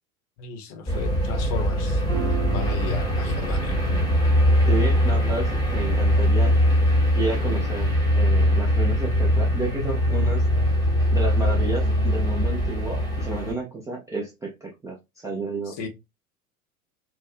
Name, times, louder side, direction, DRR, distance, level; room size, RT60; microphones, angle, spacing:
voice 1, 0.4-2.0 2.5-3.8 15.6-15.9, left 6 dB, 40° left, 0.7 m, -36 dB
sound 1, 0.9-13.5, equal, 10° left, 1.0 m, -22 dB
sound 2, 2.0-7.9, right 5 dB, 65° right, 0.9 m, -37 dB
voice 2, 4.7-6.6 7.1-10.5 11.1-15.8, right 3 dB, 10° right, 0.4 m, -31 dB
2.5 x 2.1 x 2.4 m
figure-of-eight pair, 80°, 44 cm